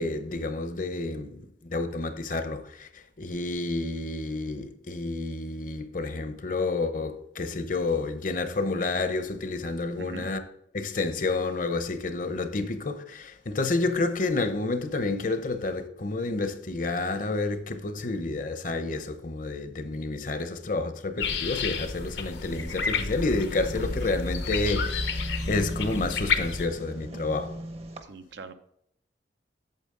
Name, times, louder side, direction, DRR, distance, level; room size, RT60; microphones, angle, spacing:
voice 1, 0.0-2.9 3.2-10.4 10.7-27.5, left 3 dB, 45° left, 0.8 m, -30 dB
sound 1, 21.2-26.7, left 4 dB, 75° left, 1.0 m, -30 dB
sound 2, 22.5-28.0, right 1 dB, 35° right, 0.8 m, -40 dB
voice 2, 28.0-28.5, right 3 dB, 80° right, 0.7 m, -42 dB
8.5 x 7.4 x 3.7 m
head